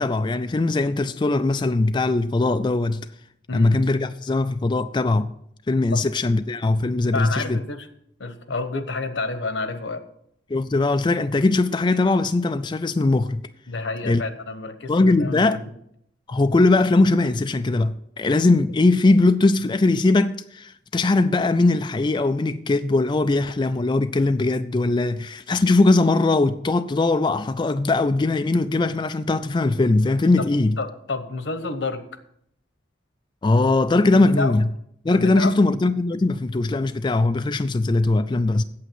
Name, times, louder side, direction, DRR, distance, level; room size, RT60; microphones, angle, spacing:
voice 1, 0.0-3.1 3.5-5.3 5.7-7.6 10.5-13.4 14.1-14.2 14.9-15.6 16.3-30.8 33.4-34.7 35.0-38.6, left 2 dB, 25° left, 0.4 m, -20 dB
voice 2, 3.5-3.8 5.9-6.0 7.1-7.9 8.2-10.0 13.7-15.6 30.8-32.0 34.1-34.5 35.1-35.5, left 3 dB, 85° left, 1.2 m, -29 dB
8.6 x 8.0 x 7.7 m
head